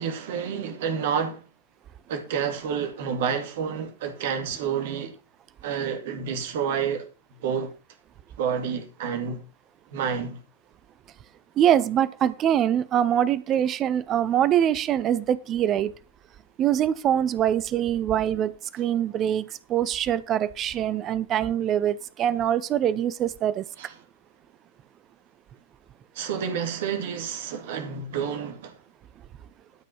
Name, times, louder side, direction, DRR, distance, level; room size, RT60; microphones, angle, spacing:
voice 1, 0.0-1.4 2.1-5.1 5.6-7.1 7.4-7.7 8.4-9.4 9.9-10.4 23.8-23.9 26.2-28.7, right 7 dB, 55° right, 2.1 m, -29 dB
voice 2, 11.6-15.9 16.6-23.6, right 10 dB, 30° right, 0.8 m, -24 dB
12.5 x 5.3 x 5.6 m
figure-of-eight pair, 90°, 0 cm